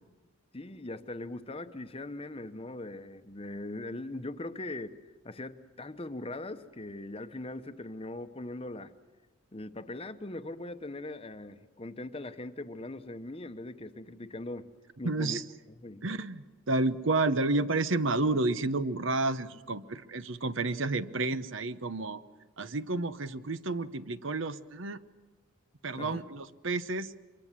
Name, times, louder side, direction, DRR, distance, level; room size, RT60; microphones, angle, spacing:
voice 1, 0.5-8.9 9.5-14.7 15.0-15.4 15.7-16.0 26.0-26.2, left 2 dB, 30° left, 10 dB, 0.9 m, -40 dB
voice 2, 15.0-15.4 16.0-22.2 22.6-25.0 25.8-27.2, right 2 dB, 70° right, 13 dB, 0.9 m, -30 dB
25.5 x 23.0 x 7.5 m, 1.2 s
head